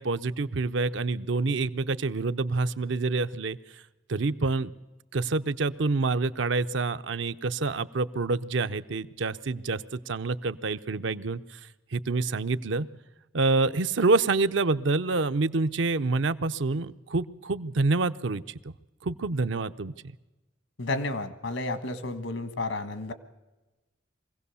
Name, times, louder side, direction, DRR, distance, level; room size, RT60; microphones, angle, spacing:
voice 1, 0.0-3.6 4.1-4.7 5.1-11.6 11.9-12.9 13.3-18.7 19.0-19.9, right 3 dB, 75° right, 11 dB, 0.6 m, -27 dB
voice 2, 20.8-23.1, left 2 dB, 80° left, 11 dB, 1.4 m, -31 dB
23.5 x 16.5 x 7.0 m, 1.1 s
head